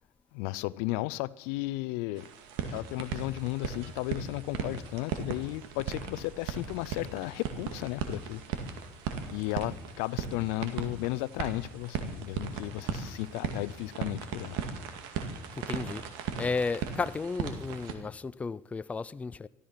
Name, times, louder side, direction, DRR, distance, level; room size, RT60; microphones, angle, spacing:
voice 1, 0.3-2.3 2.7-8.4 9.3-14.6, left 19 dB, 85° left, 0.5 m, -34 dB
sound 1, 2.1-18.0, right 6 dB, 75° right, 2.1 m, -37 dB
voice 2, 15.6-16.0 16.4-19.5, left 4 dB, 15° left, 0.4 m, -33 dB
14.0 x 13.5 x 5.8 m
supercardioid pair, 110°, 8 cm